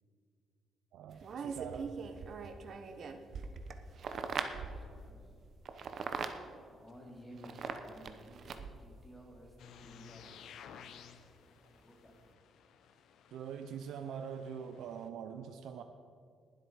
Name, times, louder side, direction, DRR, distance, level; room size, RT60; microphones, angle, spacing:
voice 1, 0.9-1.9 13.3-15.8, right 7 dB, 80° right, 7 dB, 0.6 m, -43 dB
sound 1, 1.1-4.9 5.7-6.4 7.4-8.9 10.3-10.4, right 5 dB, 55° right, 1.0 m, -41 dB
voice 2, 3.2-5.3 5.6-6.2 6.7-10.6 11.3-12.4, equal, 15° left, -1 dB, 3.3 m, -56 dB
sound 2, 9.6-15.1, left 8 dB, 75° left, 0.8 m, -56 dB
20.5 x 7.8 x 4.8 m, 2.3 s
cardioid pair, 90°, 0 cm